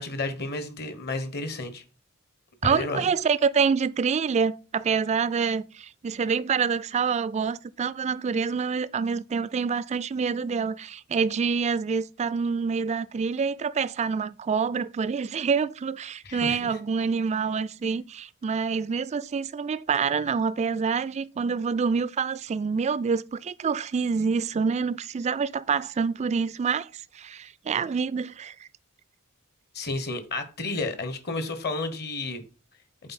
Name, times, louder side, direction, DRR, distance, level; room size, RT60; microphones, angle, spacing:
voice 1, 0.0-1.8 2.6-3.0 16.2-16.8 29.7-32.4, left 2 dB, 50° left, 1.1 m, -31 dB
voice 2, 2.6-26.9 27.1-28.5, right 5 dB, 30° right, 0.3 m, -26 dB
7.7 x 4.2 x 4.2 m
head